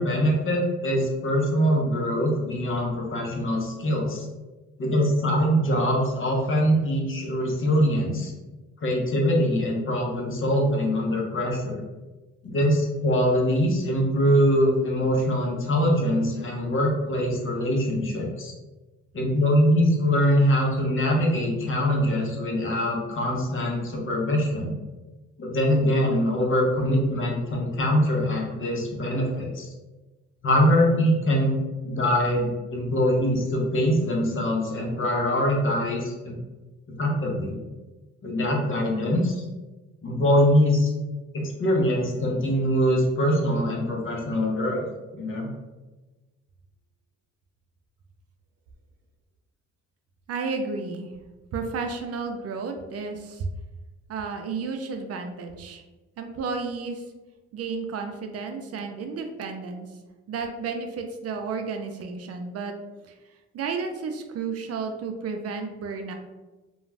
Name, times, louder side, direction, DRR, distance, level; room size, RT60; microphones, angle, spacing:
voice 1, 0.0-4.3 4.8-8.3 8.8-11.8 12.4-18.5 19.1-24.7 25.4-29.7 30.4-31.5 31.8-36.4 37.0-37.6 38.2-39.4 40.0-40.9 41.3-44.9 45.1-45.5, equal, 45° left, -1 dB, 0.8 m, -23 dB
voice 2, 50.3-51.1 51.5-53.5 54.1-55.8 56.2-57.0 57.5-59.9 60.3-62.7 63.0-63.2 63.5-66.1, right 4 dB, 55° right, 5 dB, 0.4 m, -32 dB
2.4 x 2.3 x 3.2 m, 1.2 s
cardioid pair, 90°, 30 cm